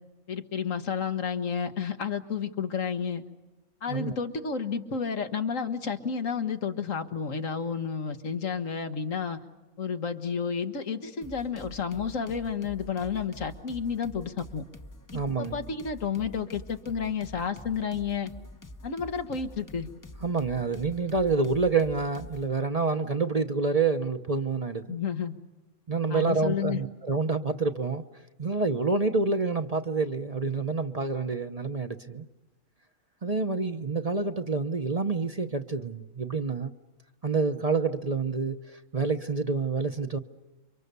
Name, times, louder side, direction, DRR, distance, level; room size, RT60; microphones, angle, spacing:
voice 1, 0.3-3.2 3.8-9.4 9.8-14.6 15.1-18.3 18.8-19.9 24.9-25.3 26.1-26.8, left 6 dB, 75° left, 7 dB, 1.8 m, -31 dB
sound 1, 11.2-22.5, left 1 dB, 15° left, 0.8 m, -47 dB
voice 2, 15.1-15.6 20.2-25.0 25.9-28.0 28.4-32.2 33.2-36.7 37.2-38.6 38.9-40.2, right 4 dB, 35° right, 7 dB, 0.9 m, -27 dB
29.0 x 25.0 x 6.9 m, 1.1 s
omnidirectional pair, 1.4 m